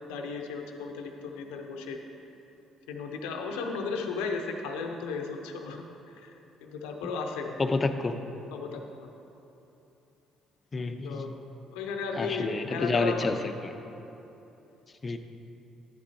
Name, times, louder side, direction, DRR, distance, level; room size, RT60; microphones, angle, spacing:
voice 1, 0.1-2.0 2.9-6.3 6.6-7.6 8.5-9.1 11.0-11.3 11.7-13.4, left 4 dB, 85° left, 4 dB, 0.7 m, -35 dB
voice 2, 7.6-8.2 10.7-11.2 12.2-13.4 15.0-15.2, left 3 dB, 35° left, 8 dB, 0.6 m, -28 dB
11.0 x 8.4 x 2.8 m, 2.9 s
hypercardioid pair, 60°, 0 cm